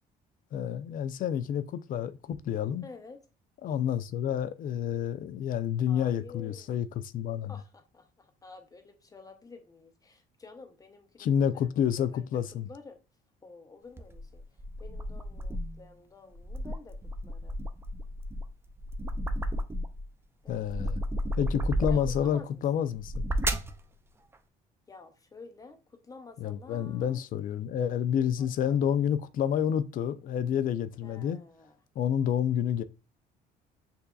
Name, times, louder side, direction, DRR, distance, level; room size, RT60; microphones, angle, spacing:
voice 1, 0.5-2.8 3.6-6.9 7.1-7.5 11.2-12.7 20.5-21.0 21.4-23.2 26.4-31.4 32.0-32.8, left 9 dB, 55° left, 0.5 m, -29 dB
voice 2, 2.8-3.2 5.9-6.7 7.5-11.3 11.5-13.0 13.4-17.6 20.4-20.7 21.9-22.8 24.9-27.3 28.4-28.8 31.0-31.8, left 3 dB, 20° left, 0.9 m, -50 dB
sound 1, 14.0-15.8 16.3-20.1 20.5-22.3 22.9-23.8, equal, 15° right, 0.4 m, -33 dB
6.8 x 2.7 x 2.3 m
cardioid pair, 110°, 17 cm